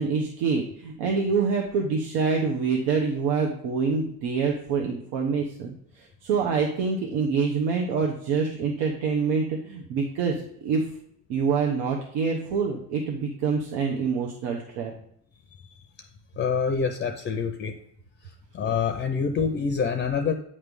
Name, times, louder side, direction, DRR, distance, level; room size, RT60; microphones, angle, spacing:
voice 1, 0.0-10.8 11.3-14.9, right 5 dB, 90° right, 1 dB, 1.0 m, -26 dB
voice 2, 16.4-17.8 18.5-20.3, left 6 dB, 30° left, 5 dB, 0.5 m, -26 dB
8.7 x 3.3 x 5.3 m, 0.72 s
cardioid pair, 150°, 39 cm